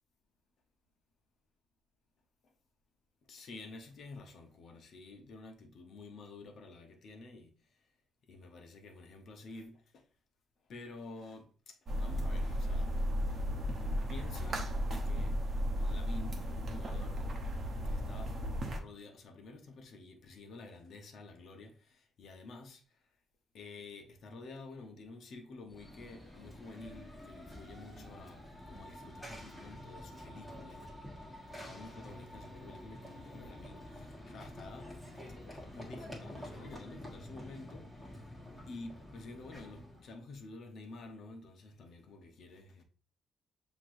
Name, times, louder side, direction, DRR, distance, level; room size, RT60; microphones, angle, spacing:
voice 1, 3.3-7.5 8.3-10.0 10.7-12.9 14.1-15.4 15.8-17.3 17.8-22.8 23.5-30.8 31.6-34.9 35.5-38.2 38.7-42.8, left 3 dB, 65° left, 0.9 m, -50 dB
sound 1, 11.9-18.8, equal, 45° right, 0.9 m, -34 dB
Run / Train, 25.7-40.1, left 1 dB, ahead, 1.4 m, -49 dB
5.9 x 3.0 x 2.6 m
cardioid pair, 90°, 0 cm